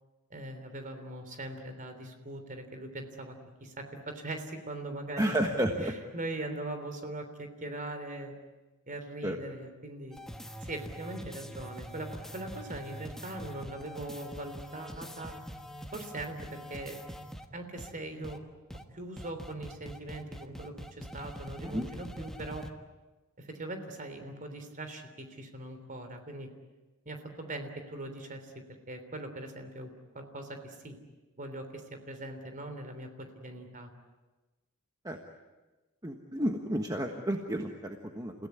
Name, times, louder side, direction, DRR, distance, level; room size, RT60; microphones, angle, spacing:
voice 1, 0.3-5.5 5.8-8.3 8.9-10.2 10.6-15.4 15.9-17.0 17.5-18.4 18.9-22.7 23.4-26.5 27.1-28.5 28.9-31.0 31.4-33.9, right 2 dB, 40° right, 7 dB, 3.4 m, -41 dB
voice 2, 5.2-5.9 9.2-9.4 21.6-21.9 35.0-35.2 36.0-38.3, right 1 dB, 15° right, 3 dB, 1.4 m, -31 dB
sound 1, 10.1-17.5 17.8-17.9 18.2-18.4 18.7-18.8 19.2-22.7, equal, ahead, 1.4 m, -44 dB
29.5 x 16.5 x 9.7 m, 1.2 s
head